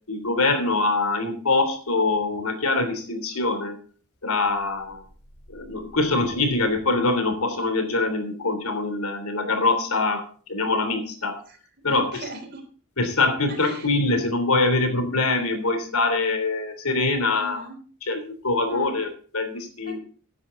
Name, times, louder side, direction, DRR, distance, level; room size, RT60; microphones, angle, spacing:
voice 1, 0.1-3.8 4.2-5.0 5.5-11.4 11.8-12.1 13.0-17.6 18.1-20.0, left 3 dB, 85° left, 8 dB, 3.2 m, -24 dB
voice 2, 11.9-12.6 13.5-13.9 17.3-17.8 18.7-19.0 19.8-20.0, right 1 dB, 45° right, 5 dB, 3.5 m, -38 dB
15.5 x 10.5 x 3.9 m, 0.41 s
head